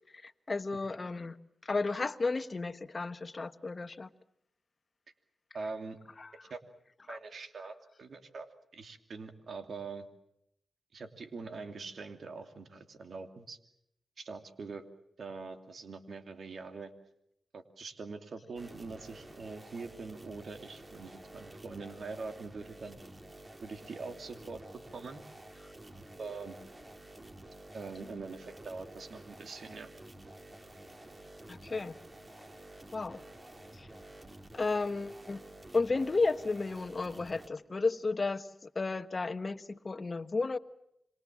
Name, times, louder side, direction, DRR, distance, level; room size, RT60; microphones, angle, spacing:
voice 1, 0.2-1.4 1.6-4.1 6.2-6.3 7.1-7.2 31.5-31.9 32.9-33.2 33.7-33.9 34.5-35.4 35.7-40.6, left 3 dB, 45° left, 12 dB, 1.3 m, -33 dB
voice 2, 5.5-6.0 6.5-6.6 7.1-8.5 8.7-10.1 10.9-13.6 14.2-14.8 15.2-16.9 17.5-23.0 23.6-24.6 24.9-25.2 25.9-26.6 27.7-29.9, right 4 dB, 65° right, 7 dB, 2.8 m, -43 dB
sound 1, 18.6-37.5, right 1 dB, 30° right, 3.6 m, -51 dB
27.0 x 23.5 x 7.6 m, 0.79 s
supercardioid pair, 40°, 0 cm